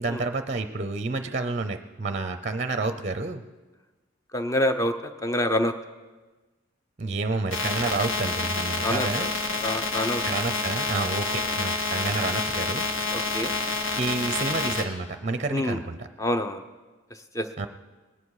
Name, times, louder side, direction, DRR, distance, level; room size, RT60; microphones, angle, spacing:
voice 1, 0.0-3.4 7.0-9.3 10.2-12.9 14.0-16.1 17.6-17.7, right 3 dB, 35° right, 9 dB, 0.5 m, -29 dB
voice 2, 4.3-5.7 8.8-9.3 9.6-10.2 11.3-11.4 13.1-13.5 15.5-15.8 16.2-16.6 17.3-17.5, left 1 dB, 15° left, 8 dB, 0.6 m, -27 dB
sound 1, 7.5-14.8, left 3 dB, 65° left, 1.5 m, -28 dB
19.5 x 9.8 x 4.8 m, 1.3 s
head